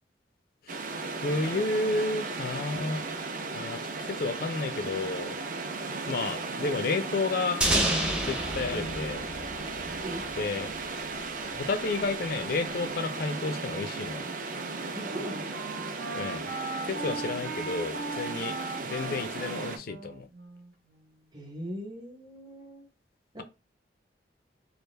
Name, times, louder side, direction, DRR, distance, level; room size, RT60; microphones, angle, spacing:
sound 1, 0.7-19.8, right 3 dB, 45° right, 0.6 m, -36 dB
voice 1, 1.2-3.0 3.5-5.4 6.1-7.6 8.2-9.2 10.4-10.7 11.5-14.2 16.1-16.5 16.9-18.6 18.8-20.3, left 3 dB, 55° left, 0.4 m, -31 dB
sound 2, 7.6-10.4, right 1 dB, 5° right, 0.6 m, -29 dB
Wind instrument woodwind instrument, 14.5-21.2, right 3 dB, 75° right, 1.0 m, -40 dB
voice 2, 14.9-15.5 21.3-22.9 23.3-23.4, equal, 25° right, 1.0 m, -39 dB
3.3 x 2.5 x 3.2 m
head